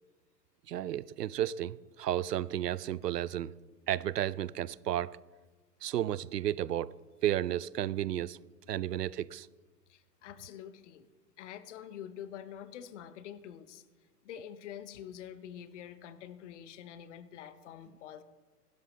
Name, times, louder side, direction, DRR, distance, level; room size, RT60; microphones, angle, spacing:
voice 1, 0.7-3.5 3.9-5.2 5.8-6.9 7.2-8.4 8.7-9.5, right 12 dB, 80° right, 0.5 m, -32 dB
voice 2, 9.9-11.1 11.4-13.8 14.2-18.2, left 9 dB, 45° left, 0.9 m, -46 dB
16.0 x 12.5 x 3.2 m
figure-of-eight pair, 110°, 48 cm